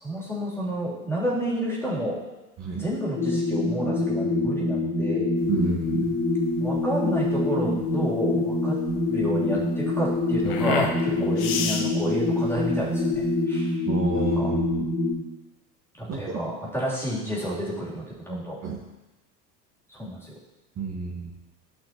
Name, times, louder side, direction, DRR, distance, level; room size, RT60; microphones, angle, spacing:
voice 1, 0.0-2.2 2.8-5.3 6.6-8.8 9.1-13.8 14.4-14.5 16.0-18.6 19.9-20.3, equal, 5° left, -6 dB, 3.2 m, -30 dB
sound 1, 3.2-15.1, left 2 dB, 40° left, 2.8 m, -25 dB
sound 2, 5.4-13.4, left 6 dB, 65° left, 1.0 m, -34 dB
voice 2, 5.5-6.1 11.1-11.3 13.8-14.9 16.1-16.4 18.6-18.8 20.8-21.3, right 3 dB, 30° right, -3 dB, 1.4 m, -29 dB
13.0 x 5.8 x 3.0 m, 1.1 s
figure-of-eight pair, 70°, 50 cm